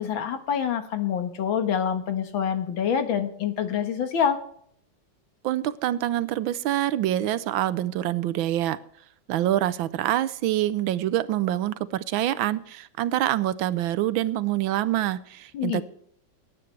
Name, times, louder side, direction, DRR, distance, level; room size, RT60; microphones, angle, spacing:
voice 1, 0.0-4.4 15.5-15.8, left 8 dB, 80° left, 8 dB, 2.1 m, -26 dB
voice 2, 5.4-8.8 9.3-15.8, right 13 dB, 90° right, 16 dB, 1.5 m, -26 dB
19.0 x 9.3 x 3.3 m, 0.64 s
omnidirectional pair, 2.1 m